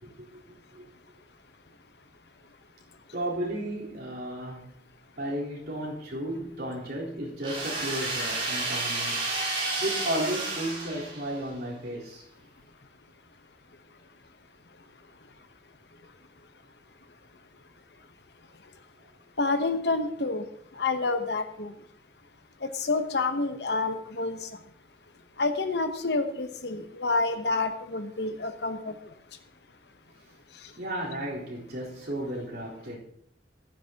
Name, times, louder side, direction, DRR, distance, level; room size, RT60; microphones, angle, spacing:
voice 1, 0.0-0.8 3.1-4.7 5.2-12.3 30.2-30.3 30.8-33.0, right 1 dB, 65° right, 3.9 m, -34 dB
sound 1, 7.4-11.5, right 2 dB, 35° right, 4.5 m, -31 dB
voice 2, 19.4-20.4 20.8-21.7 22.6-24.5 25.4-28.9, left 3 dB, 70° left, 1.0 m, -28 dB
14.5 x 12.5 x 2.9 m
head